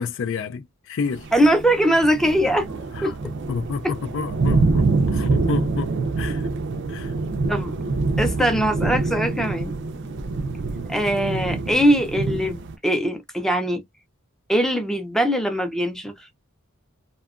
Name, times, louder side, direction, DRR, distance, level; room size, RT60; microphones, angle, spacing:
voice 1, 0.0-1.3 3.0-3.1 3.5-6.4 6.9-7.1, left 5 dB, 65° left, 0.4 m, -30 dB
sound 1, 1.1-12.7, right 3 dB, 60° right, 0.5 m, -25 dB
voice 2, 1.3-3.1 7.5-7.7 8.2-9.7 10.9-13.8 14.5-16.3, equal, ahead, 0.5 m, -21 dB
2.7 x 2.2 x 2.4 m
head